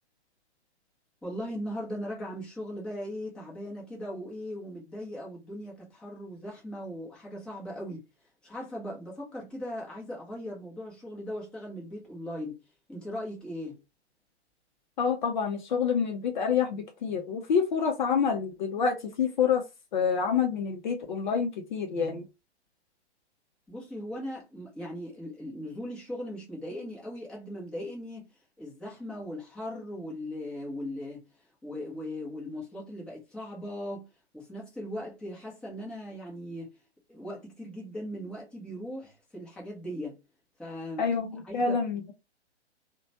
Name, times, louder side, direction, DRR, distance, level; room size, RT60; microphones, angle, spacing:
voice 1, 1.2-8.1 8.4-12.6 12.9-13.8 23.7-28.3 28.6-31.3 31.6-34.1 34.3-36.7 37.1-40.2 40.6-41.1 41.4-41.8, equal, 5° left, 0.7 m, -38 dB
voice 2, 15.0-19.6 19.9-22.3 41.0-42.0, left 6 dB, 45° left, 0.5 m, -27 dB
3.0 x 2.1 x 2.7 m
figure-of-eight pair, 115°, 34 cm